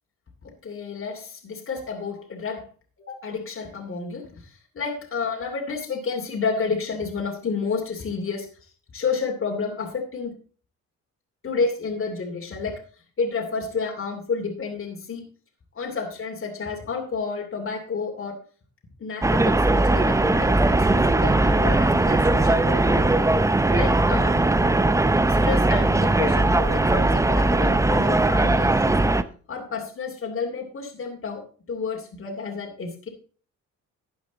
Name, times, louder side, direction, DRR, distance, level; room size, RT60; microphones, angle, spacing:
voice 1, 0.6-2.7 3.1-8.5 8.9-10.3 11.4-12.7 13.2-15.2 15.7-18.3 19.0-23.1 23.7-24.4 25.3-29.0 29.5-33.1, left 5 dB, 45° left, 0 dB, 2.8 m, -30 dB
sound 1, 19.2-29.2, right 2 dB, 10° right, 0.7 m, -19 dB
12.5 x 8.6 x 4.1 m, 0.41 s
cardioid pair, 90°, 30 cm